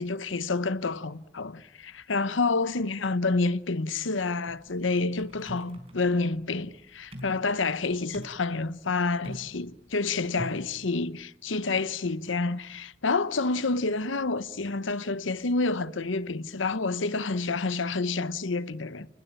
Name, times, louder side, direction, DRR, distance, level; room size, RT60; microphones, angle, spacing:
voice 1, 0.0-19.1, left 3 dB, 90° left, 1.0 m, -28 dB
sound 1, 4.5-10.8, equal, 30° right, 4.4 m, -44 dB
29.5 x 20.5 x 8.7 m
head